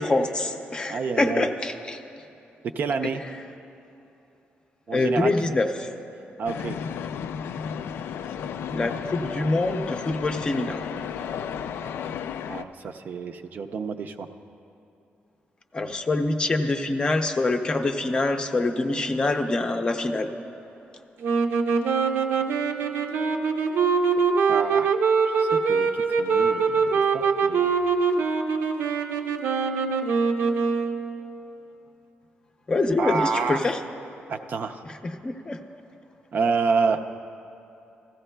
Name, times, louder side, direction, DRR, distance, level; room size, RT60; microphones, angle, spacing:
voice 1, 0.0-2.0 4.9-5.9 8.7-10.8 15.7-20.3 32.7-33.8 35.0-35.6, left 2 dB, 25° left, 5 dB, 0.5 m, -25 dB
voice 2, 0.9-1.5 2.7-3.2 4.9-5.6 6.4-6.8 12.5-14.3 24.5-25.0 25.3-27.8 33.0-33.6 34.3-34.8 36.3-37.0, right 5 dB, 50° right, 6 dB, 0.5 m, -28 dB
sound 1, 6.4-12.6, left 7 dB, 80° left, 0.3 m, -33 dB
sound 2, 21.2-31.2, right 5 dB, 85° right, 0.7 m, -23 dB
16.5 x 14.0 x 2.2 m, 2.8 s
wide cardioid pair, 155°, 4 cm